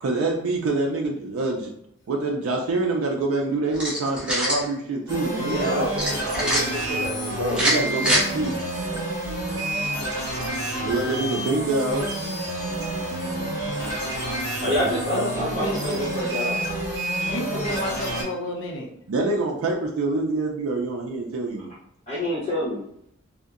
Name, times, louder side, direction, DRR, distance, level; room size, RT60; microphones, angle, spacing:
voice 1, 0.0-1.7 2.1-6.7 7.6-8.6 10.8-12.1 19.1-21.7, right 2 dB, 85° right, -1 dB, 0.4 m, -26 dB
sound 1, 3.7-4.6 6.0-6.6 7.5-8.2, equal, 5° right, 0.6 m, -23 dB
sound 2, 5.1-18.2, right 1 dB, 20° right, 1.2 m, -29 dB
voice 2, 5.4-6.0 6.3-7.6 14.6-16.6 22.1-22.8, left 1 dB, 35° left, -10 dB, 1.1 m, -28 dB
voice 3, 15.1-15.8 17.3-18.9, left 1 dB, 60° left, 0 dB, 0.6 m, -30 dB
2.7 x 2.1 x 2.4 m, 0.74 s
head